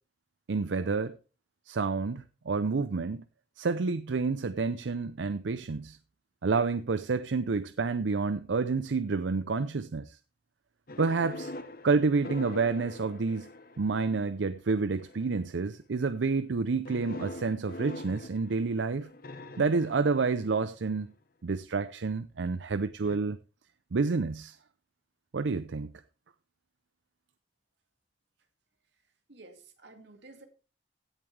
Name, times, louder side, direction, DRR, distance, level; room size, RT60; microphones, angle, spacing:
voice 1, 0.5-1.1 1.7-3.2 3.6-6.0 6.4-10.2 11.0-11.5 11.8-13.5 13.8-19.1 19.6-21.1 21.4-23.4 23.9-24.6 25.3-25.9, right 4 dB, 90° right, 0.6 m, -29 dB
sound 1, 10.9-14.3 15.0-15.4 16.9-21.0 23.0-23.2, left 2 dB, 55° left, 1.0 m, -43 dB
voice 2, 29.3-30.5, right 2 dB, 70° right, 2.3 m, -52 dB
16.5 x 7.3 x 3.3 m
head